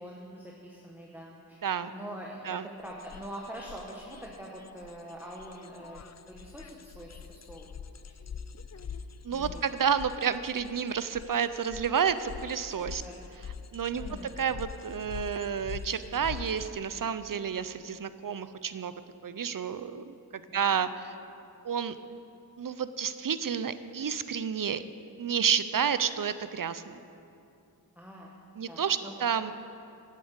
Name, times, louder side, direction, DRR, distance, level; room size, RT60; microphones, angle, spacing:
voice 1, 0.0-1.6 1.9-6.0 6.3-7.7 8.0-8.1 9.3-9.6 13.0-13.2 14.0-14.4 20.5-20.8 28.0-28.3 28.7-29.2, right 1 dB, 5° right, -3 dB, 1.2 m, -44 dB
sound 1, 2.9-16.7, left 6 dB, 45° left, 0.4 m, -44 dB
voice 2, 9.2-13.0 13.7-14.0 14.4-18.9 19.2-21.1 21.6-21.9 22.6-24.8 25.2-27.0 28.6-29.5, right 7 dB, 55° right, 13 dB, 0.5 m, -30 dB
8.7 x 7.5 x 7.9 m, 2.7 s
wide cardioid pair, 45°, 39 cm